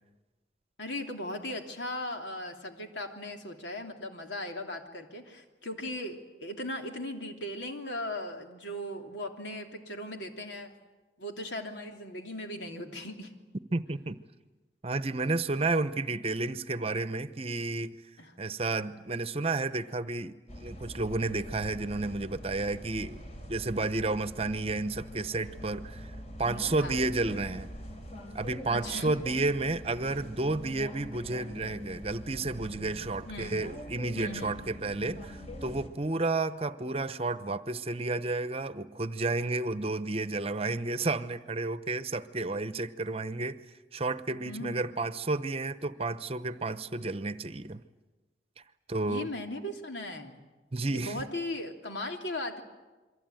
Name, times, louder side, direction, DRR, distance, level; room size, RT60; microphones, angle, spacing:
voice 1, 0.8-10.7 11.2-13.3 18.2-18.3 26.7-27.0 28.7-29.2 33.3-33.6 34.2-34.6 44.4-44.9 49.1-50.5 50.9-52.6, left 1 dB, 90° left, 3 dB, 3.1 m, -38 dB
voice 2, 13.7-14.2 14.8-18.0 18.4-20.3 20.6-23.2 23.5-27.7 28.3-43.6 43.9-47.8 48.9-49.3 50.7-51.2, right 3 dB, 35° right, 13 dB, 0.9 m, -31 dB
sound 1, 20.5-35.9, left 1 dB, 40° left, 3.9 m, -44 dB
28.0 x 23.5 x 9.1 m, 1.2 s
head